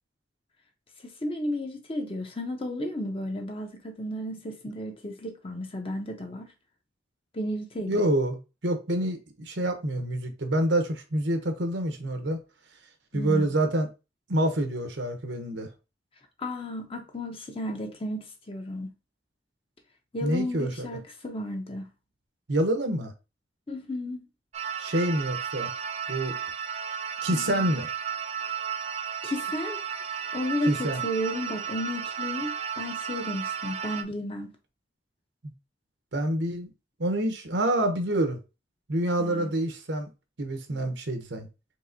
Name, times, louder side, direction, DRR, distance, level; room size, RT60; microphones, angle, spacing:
voice 1, 1.0-6.5 7.3-8.1 13.1-13.6 16.4-18.9 20.1-21.9 23.7-24.2 27.3-27.8 29.2-29.8 30.3-34.5 39.2-39.5, left 1 dB, 30° left, 0.8 m, -33 dB
voice 2, 7.9-12.4 13.1-13.9 14.3-15.7 20.2-20.9 22.5-23.1 24.8-25.7 26.1-26.4 27.2-27.9 30.7-31.0 36.1-36.7 37.0-38.4 38.9-40.1 40.4-41.5, right 1 dB, 80° right, 0.9 m, -27 dB
sound 1, 24.5-34.0, right 7 dB, 35° right, 0.4 m, -33 dB
4.7 x 3.4 x 2.7 m
head